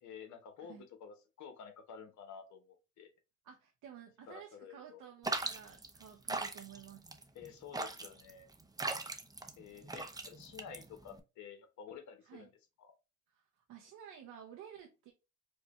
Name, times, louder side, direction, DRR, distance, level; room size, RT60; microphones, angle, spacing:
voice 1, 0.0-3.1 4.3-5.0 7.3-8.5 9.6-12.5 12.8-12.9, left 7 dB, 70° left, 1.0 m, -51 dB
voice 2, 3.4-7.1 12.2-12.5 13.3-15.1, right 9 dB, 85° right, 0.8 m, -53 dB
sound 1, 5.2-11.2, right 2 dB, 15° right, 0.6 m, -40 dB
4.7 x 2.2 x 3.0 m
cardioid pair, 90°, 30 cm